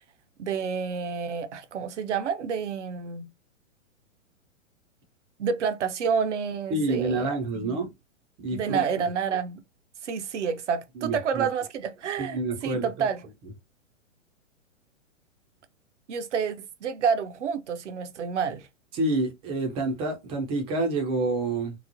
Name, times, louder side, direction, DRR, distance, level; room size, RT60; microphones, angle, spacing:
voice 1, 0.4-3.3 5.4-7.9 8.5-9.6 10.0-13.2 16.1-18.7, right 6 dB, 60° right, 0.7 m, -29 dB
voice 2, 6.7-7.9 8.4-9.1 11.0-11.5 12.2-12.9 18.9-21.7, right 2 dB, 15° right, 0.5 m, -28 dB
3.0 x 2.0 x 2.6 m
figure-of-eight pair, 110°, 40 cm